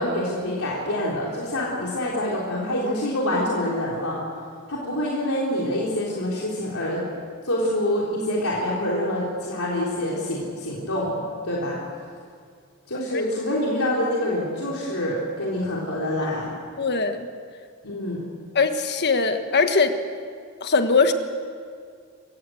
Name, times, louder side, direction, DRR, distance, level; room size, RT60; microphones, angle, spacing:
voice 1, 0.0-4.2 4.7-7.0 7.4-11.8 12.9-16.5 17.8-18.2, left 1 dB, 75° left, -5 dB, 3.5 m, -26 dB
voice 2, 16.8-17.3 18.5-19.9 20.6-21.1, left 4 dB, 50° left, 7 dB, 1.4 m, -20 dB
27.0 x 15.5 x 7.8 m, 2.1 s
head